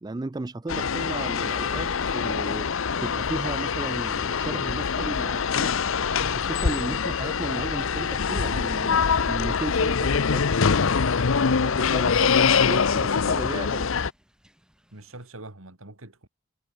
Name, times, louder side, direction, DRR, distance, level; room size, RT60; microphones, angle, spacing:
voice 1, 0.0-5.8 6.4-10.4 11.4-12.1 12.4-13.9, right 2 dB, 20° right, 0.4 m, -35 dB
sound 1, 0.7-14.1, left 6 dB, 70° left, 0.7 m, -24 dB
Thunder / Rain, 1.7-15.3, equal, 5° right, 3.8 m, -58 dB
voice 2, 11.6-12.8 14.9-16.3, right 2 dB, 75° right, 3.0 m, -44 dB
head